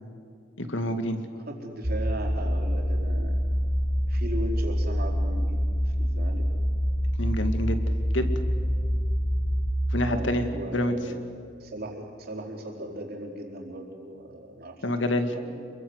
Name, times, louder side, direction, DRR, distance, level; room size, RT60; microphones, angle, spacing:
voice 1, 0.6-1.2 7.2-7.8 8.1-8.3 9.9-10.5 10.7-10.9 14.8-15.3, left 1 dB, 75° left, 7 dB, 2.2 m, -27 dB
voice 2, 1.5-3.4 4.1-6.5 10.1-11.2 11.6-14.8 15.3-15.6, right 1 dB, 55° right, 1 dB, 4.4 m, -38 dB
sound 1, 1.8-9.7, equal, 40° right, 2.1 m, -26 dB
27.5 x 23.0 x 8.1 m, 2.3 s
head